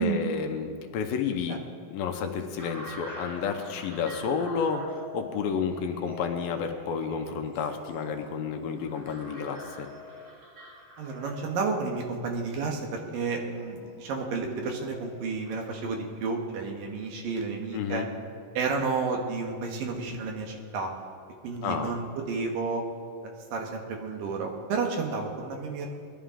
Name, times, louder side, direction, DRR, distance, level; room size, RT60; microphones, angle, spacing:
voice 1, 0.0-1.6 1.9-9.9 17.7-18.1 21.6-21.9, left 6 dB, 85° left, 5 dB, 2.7 m, -31 dB
sound 1, 2.6-15.8, left 2 dB, 45° right, 5.2 m, -46 dB
voice 2, 11.0-18.0 18.5-20.9 21.4-22.8 23.2-25.9, right 4 dB, 75° right, 2 dB, 3.0 m, -31 dB
21.0 x 11.5 x 3.7 m, 2.3 s
omnidirectional pair, 4.1 m